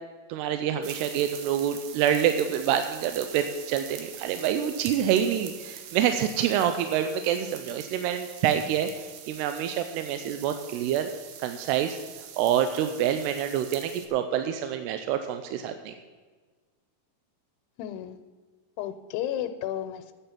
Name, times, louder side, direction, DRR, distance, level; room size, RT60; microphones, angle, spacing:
voice 1, 0.3-11.1 11.4-12.0 12.4-15.9, right 9 dB, 90° right, 8 dB, 2.7 m, -27 dB
sound 1, 0.8-14.1, right 8 dB, 70° right, 2.6 m, -44 dB
voice 2, 17.8-18.2 18.8-20.1, left 11 dB, 90° left, 9 dB, 2.8 m, -32 dB
11.5 x 9.0 x 5.8 m, 1.4 s
omnidirectional pair, 4.6 m